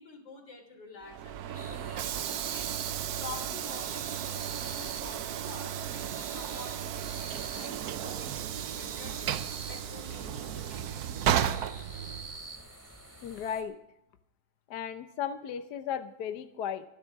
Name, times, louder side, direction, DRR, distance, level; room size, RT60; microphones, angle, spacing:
voice 1, 0.0-2.8 3.1-9.4 9.7-11.1, left 4 dB, 90° left, 4 dB, 4.0 m, -48 dB
Train / Sliding door, 1.0-12.5, right 10 dB, 65° right, 1.1 m, -34 dB
sound 1, 1.5-13.6, right 2 dB, 10° right, 2.6 m, -47 dB
voice 2, 13.2-13.8 14.7-16.8, left 8 dB, 65° left, 9 dB, 1.3 m, -35 dB
25.0 x 11.0 x 3.5 m, 0.81 s
omnidirectional pair, 2.0 m